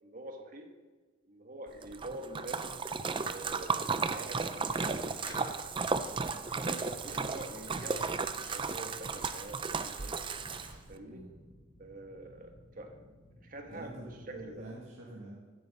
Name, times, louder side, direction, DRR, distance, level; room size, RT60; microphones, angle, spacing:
voice 1, 0.0-0.7 1.2-2.7 3.2-5.6 6.3-10.2 10.9-11.2 11.8-13.1 13.4-14.0 14.3-14.6, right 1 dB, 40° right, 4 dB, 1.3 m, -46 dB
Splash splatter, 1.8-10.9, right 4 dB, 25° right, 0.4 m, -34 dB
sound 1, 2.8-14.7, equal, 40° left, 3.2 m, -58 dB
sound 2, 4.6-10.8, equal, 10° left, 4.9 m, -53 dB
voice 2, 13.7-15.4, right 1 dB, 85° right, -5 dB, 2.1 m, -46 dB
15.0 x 10.5 x 4.1 m, 1.3 s
head